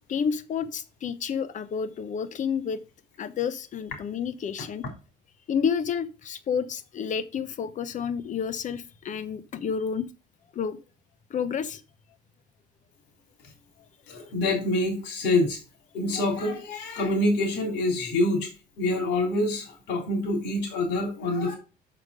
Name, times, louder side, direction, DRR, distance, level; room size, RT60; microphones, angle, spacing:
voice 1, 0.1-2.8 3.2-4.8 5.5-10.1 10.5-10.8 11.3-11.8, left 7 dB, 45° left, 0.9 m, -30 dB
voice 2, 14.1-15.6 15.9-18.5 18.8-21.5, left 2 dB, 85° left, 3.4 m, -26 dB
6.6 x 5.8 x 4.9 m
cardioid pair, 110°, 17 cm